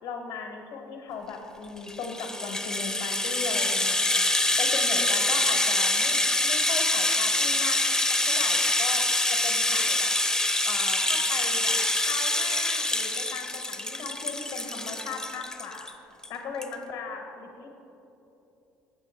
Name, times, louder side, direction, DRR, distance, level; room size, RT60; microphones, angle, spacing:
voice 1, 0.0-7.9 8.2-10.1 10.6-11.8 12.1-15.9 16.3-17.7, left 5 dB, 65° left, 3 dB, 1.1 m, -37 dB
Rattle (instrument), 1.8-15.9 16.2-16.3 16.6-16.7, left 2 dB, 10° left, 0.6 m, -25 dB
7.5 x 6.3 x 4.4 m, 3.0 s
hypercardioid pair, 60°, 8 cm